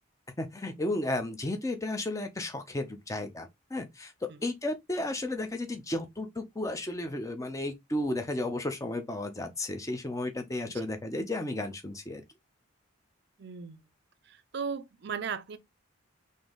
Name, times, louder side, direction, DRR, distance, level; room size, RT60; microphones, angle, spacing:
voice 1, 0.4-4.1 4.4-12.2, left 1 dB, 15° left, 0.5 m, -33 dB
voice 2, 13.4-13.8 14.2-15.6, right 6 dB, 55° right, 0.4 m, -37 dB
3.7 x 2.7 x 3.5 m
head